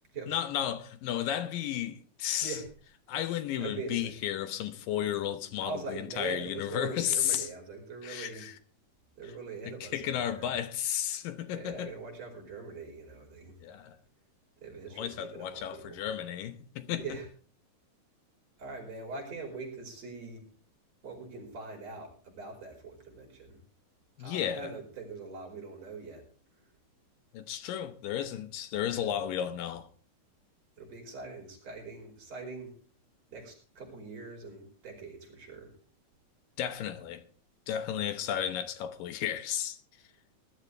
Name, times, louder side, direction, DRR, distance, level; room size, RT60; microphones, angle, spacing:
voice 1, 0.3-2.6 3.1-7.5 8.0-8.6 9.7-11.9 13.6-14.0 15.0-17.0 24.2-24.7 27.3-29.9 36.6-37.2 37.7-39.8, left 10 dB, 75° left, 2.6 m, -33 dB
voice 2, 3.6-4.1 5.6-8.5 9.2-10.6 11.5-13.6 14.6-16.1 17.0-17.3 18.6-20.4 21.0-23.6 24.2-26.2 28.8-29.1 30.8-32.7 33.3-35.7, right 4 dB, 45° right, 6.1 m, -42 dB
20.0 x 12.0 x 3.4 m
omnidirectional pair, 4.1 m